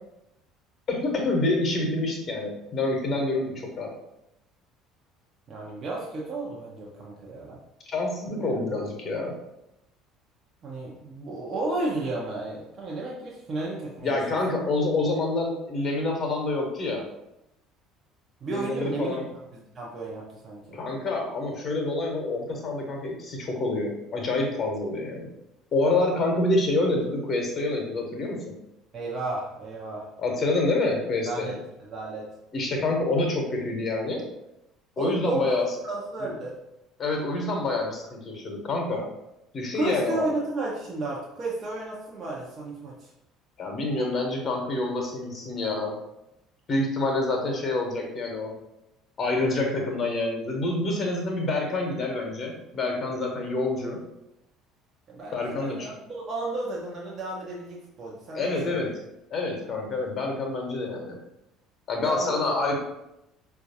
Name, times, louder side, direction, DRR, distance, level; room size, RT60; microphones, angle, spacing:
voice 1, 0.9-3.9 7.9-9.3 14.0-17.0 18.5-19.2 20.7-25.3 25.7-28.4 30.2-31.5 32.5-34.2 35.0-35.6 37.0-39.1 39.5-40.3 43.6-45.9 46.7-48.5 49.2-54.0 55.3-55.9 58.3-58.9 59.3-61.2 61.9-62.7, left 2 dB, 40° left, 1 dB, 0.8 m, -27 dB
voice 2, 5.5-7.6 8.3-8.6 10.6-14.2 18.4-19.2 19.5-20.8 28.9-30.1 31.3-32.3 35.0-35.6 35.8-36.6 39.7-43.1 55.1-58.8 62.0-62.4, right 2 dB, 40° right, -3 dB, 0.7 m, -33 dB
4.5 x 2.3 x 2.7 m, 0.87 s
figure-of-eight pair, 60°, 0 cm